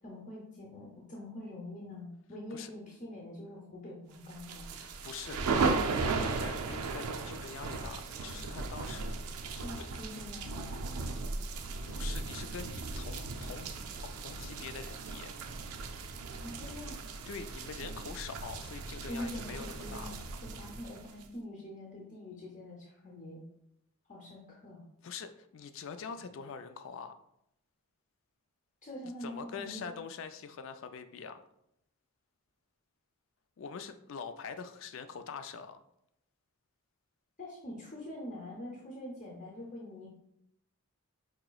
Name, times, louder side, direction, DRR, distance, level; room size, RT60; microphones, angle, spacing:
voice 1, 0.0-4.7 9.6-10.9 16.4-16.9 19.1-23.4 24.1-24.8 28.8-29.9 37.4-40.1, left 1 dB, 35° left, -4 dB, 0.7 m, -44 dB
sound 1, 4.3-21.3, right 4 dB, 90° right, 0.4 m, -36 dB
voice 2, 4.7-9.2 9.5-9.7 11.9-13.7 14.0-15.3 17.3-20.1 25.0-27.1 29.2-31.4 33.6-35.8, left 6 dB, 60° left, 9 dB, 0.3 m, -44 dB
4.9 x 2.9 x 2.3 m, 0.78 s
head